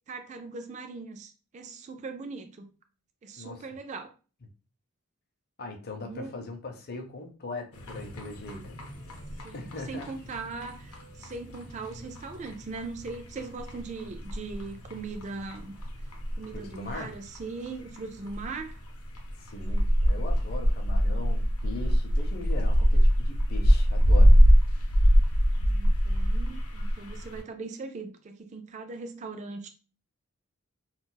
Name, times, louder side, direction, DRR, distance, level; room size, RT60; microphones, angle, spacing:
voice 1, 0.1-2.7 3.2-4.1 6.0-6.4 9.4-15.7 16.4-18.8 25.5-29.7, right 4 dB, 35° right, 0.3 m, -40 dB
voice 2, 5.6-8.8 9.5-10.1 16.5-17.1 19.4-24.4, left 2 dB, 45° left, 0.6 m, -40 dB
sound 1, 7.7-27.4, equal, 85° left, 0.7 m, -25 dB
2.3 x 2.3 x 3.9 m
head